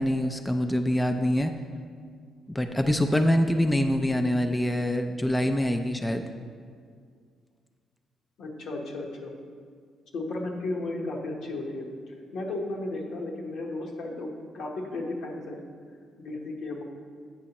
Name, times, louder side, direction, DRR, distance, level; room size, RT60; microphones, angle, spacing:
voice 1, 0.0-1.5 2.5-6.3, left 1 dB, 10° left, 6 dB, 0.3 m, -25 dB
voice 2, 8.4-9.3 10.1-15.6 16.2-16.8, left 2 dB, 75° left, 0 dB, 1.0 m, -34 dB
8.3 x 6.1 x 2.9 m, 2.1 s
cardioid pair, 90°, 0 cm